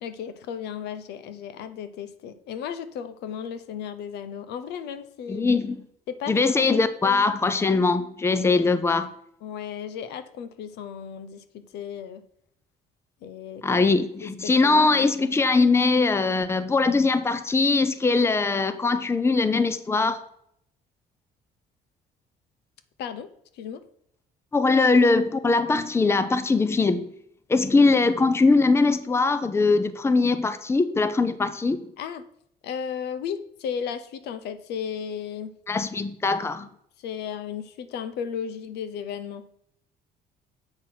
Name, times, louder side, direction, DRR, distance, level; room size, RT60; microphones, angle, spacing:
voice 1, 0.0-5.4 6.1-7.2 9.4-12.2 13.2-13.8 14.2-15.3 23.0-23.3 23.6-23.8 32.0-32.2 32.6-35.5 37.0-39.5, left 7 dB, 80° left, 12 dB, 0.8 m, -35 dB
voice 2, 5.3-5.8 6.3-9.1 13.6-20.2 24.5-27.1 27.5-31.8 35.7-36.7, left 3 dB, 15° left, 12 dB, 0.6 m, -21 dB
7.7 x 6.0 x 4.4 m, 0.71 s
cardioid pair, 110°, 17 cm